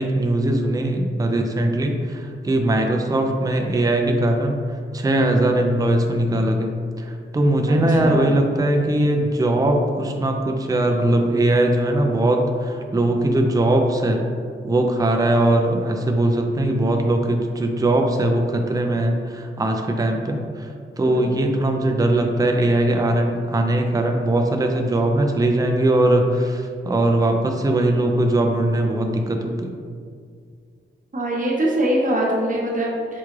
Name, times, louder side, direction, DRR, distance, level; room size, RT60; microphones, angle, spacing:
voice 1, 0.0-4.6 4.9-14.2 14.6-29.7, right 1 dB, 20° right, 3 dB, 0.4 m, -20 dB
voice 2, 7.7-8.3 21.0-21.3 31.1-33.2, right 1 dB, 40° right, -2 dB, 0.9 m, -23 dB
5.9 x 2.3 x 3.1 m, 2.2 s
cardioid pair, 70°, 20 cm